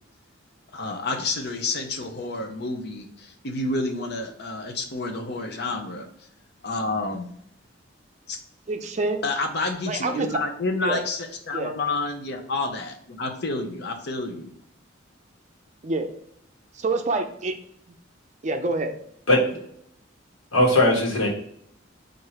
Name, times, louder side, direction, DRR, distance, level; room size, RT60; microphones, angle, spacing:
voice 1, 0.7-6.1 6.6-7.3 8.3-8.4 9.2-14.5, left 3 dB, 55° left, 4 dB, 0.7 m, -29 dB
voice 2, 8.7-9.2 9.9-10.3 10.8-11.0 11.5-11.7 15.8-16.1 16.7-17.5 18.4-18.9, right 2 dB, 35° right, 6 dB, 0.5 m, -26 dB
voice 3, 19.3-19.7 20.5-21.3, left 1 dB, 85° left, 0 dB, 1.3 m, -19 dB
4.3 x 2.6 x 4.8 m, 0.69 s
head